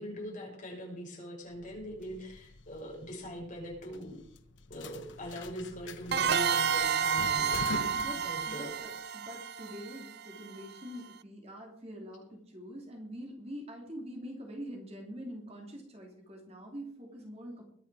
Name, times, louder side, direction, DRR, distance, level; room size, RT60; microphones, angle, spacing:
voice 1, 0.0-4.2 4.7-7.9 8.2-8.7, equal, 40° left, -2 dB, 6.4 m, -42 dB
sound 1, 1.5-8.9, left 3 dB, 70° left, 0.9 m, -46 dB
sound 2, 6.1-10.6, right 7 dB, 55° right, 0.5 m, -30 dB
voice 2, 7.9-17.6, equal, 30° right, 1 dB, 3.0 m, -45 dB
22.0 x 9.1 x 4.8 m, 0.66 s
head